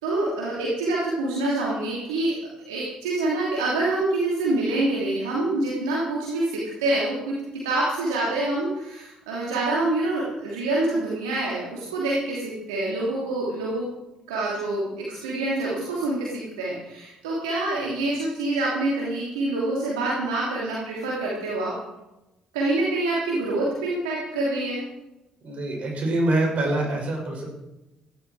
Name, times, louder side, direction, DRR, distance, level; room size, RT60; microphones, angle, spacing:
voice 1, 0.0-2.4 2.7-7.4 7.6-13.9 14.3-21.8 22.5-24.8, right 2 dB, 85° right, -5 dB, 2.9 m, -26 dB
voice 2, 25.4-27.5, right 2 dB, 55° right, 0 dB, 6.9 m, -25 dB
16.0 x 12.0 x 4.9 m, 0.96 s
hypercardioid pair, 50°, 3 cm